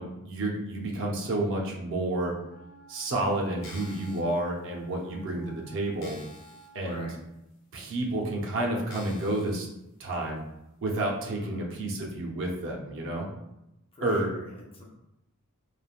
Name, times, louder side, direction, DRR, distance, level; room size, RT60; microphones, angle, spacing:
voice 1, 0.0-2.3 2.9-6.2 6.7-7.1 7.7-9.7 10.0-10.4 10.8-13.3 14.0-14.3, right 1 dB, 60° right, -1 dB, 0.6 m, -30 dB
Wind instrument woodwind instrument, 2.4-7.2, right 1 dB, 75° right, 1.1 m, -54 dB
sound 1, 3.5-4.2 4.9-5.0 5.4-5.5 6.0-6.7 7.1-7.2 8.0-8.1 8.9-9.6 10.1-10.2, left 2 dB, 55° left, 0.7 m, -48 dB
voice 2, 3.7-4.0 6.8-7.2 11.4-11.8 13.9-14.8, left 1 dB, 25° left, -2 dB, 0.6 m, -45 dB
3.2 x 2.1 x 2.4 m, 0.87 s
head